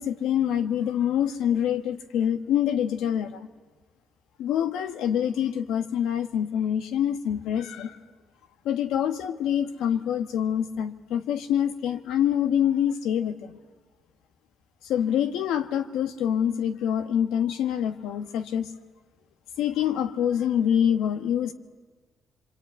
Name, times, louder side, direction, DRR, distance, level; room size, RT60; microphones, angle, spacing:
voice 1, 0.0-3.5 4.4-8.0 8.6-13.5 14.8-18.7 19.6-21.5, left 9 dB, 85° left, 10 dB, 1.4 m, -26 dB
25.5 x 24.5 x 9.5 m, 1.4 s
cardioid pair, 90°, 0 cm